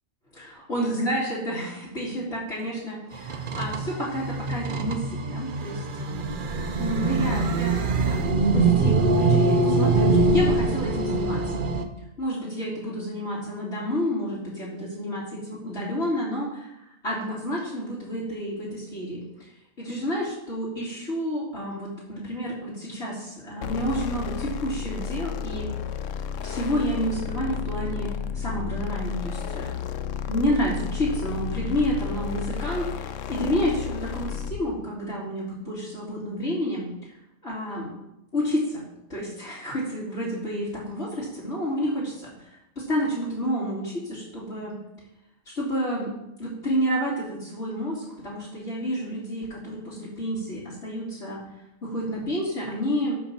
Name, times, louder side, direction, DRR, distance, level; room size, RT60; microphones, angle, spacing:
voice 1, 0.3-6.2 6.8-7.8 8.1-11.5 12.2-19.5 19.8-25.7 26.4-29.8 30.3-36.8 37.4-37.9 38.3-38.8 39.1-42.5 42.8-44.8 45.5-46.1 46.4-51.4 51.8-53.2, equal, 60° left, -10 dB, 3.1 m, -30 dB
sound 1, 3.1-11.8, right 3 dB, 50° right, 0.8 m, -23 dB
sound 2, 23.6-34.7, left 7 dB, 80° left, 1.0 m, -32 dB
10.5 x 4.0 x 7.3 m, 0.86 s
omnidirectional pair, 1.3 m